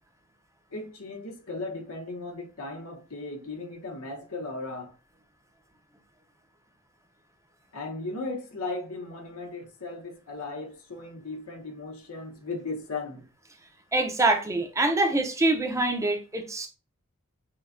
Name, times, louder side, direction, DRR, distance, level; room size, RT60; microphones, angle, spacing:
voice 1, 0.7-4.9 7.7-13.3, left 3 dB, 85° left, 1.1 m, -36 dB
voice 2, 13.9-16.7, right 2 dB, 15° right, 0.6 m, -25 dB
6.2 x 2.3 x 2.6 m
head